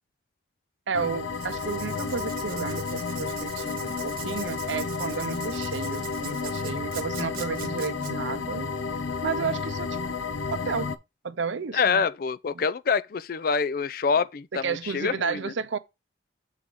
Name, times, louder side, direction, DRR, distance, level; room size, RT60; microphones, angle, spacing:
sound 1, 0.9-11.0, left 4 dB, 85° left, 0.6 m, -31 dB
voice 1, 0.9-8.7 9.2-10.0 10.5-10.9 11.2-12.1 12.5-12.6 14.6-15.8, right 5 dB, 75° right, 0.6 m, -32 dB
Writing, 1.3-8.1, right 9 dB, 45° right, 1.1 m, -42 dB
voice 2, 11.7-15.5, left 5 dB, 50° left, 0.4 m, -26 dB
7.2 x 4.0 x 4.7 m
head